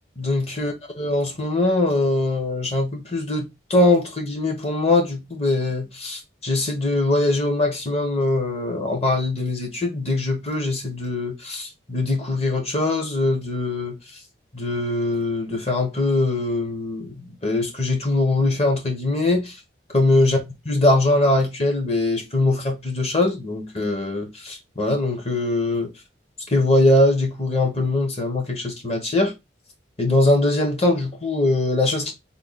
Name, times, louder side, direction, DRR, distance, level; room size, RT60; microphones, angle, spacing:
voice 1, 0.2-14.0 14.5-19.6 19.9-25.9 26.5-29.3 30.0-32.1, left 2 dB, 30° left, 1.0 m, -22 dB
3.8 x 2.2 x 3.9 m
head